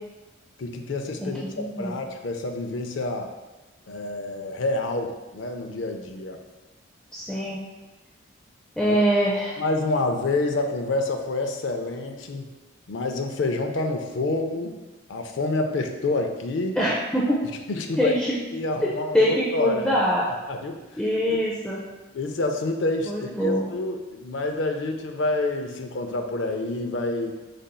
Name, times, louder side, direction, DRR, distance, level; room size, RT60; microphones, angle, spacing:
voice 1, 0.6-3.3 3.9-6.4 8.8-8.9 9.6-12.5 12.9-14.8 15.1-16.8 17.7-18.2 18.5-19.9 20.5-20.8 21.3-21.4 22.1-27.3, left 2 dB, 70° left, 4 dB, 0.5 m, -28 dB
voice 2, 1.2-2.0 7.1-7.6 8.8-9.6 16.8-17.4 18.0-18.4 19.1-20.3 21.0-21.8 23.1-23.7, equal, 5° left, -6 dB, 0.4 m, -23 dB
5.1 x 4.2 x 2.2 m, 1.1 s
head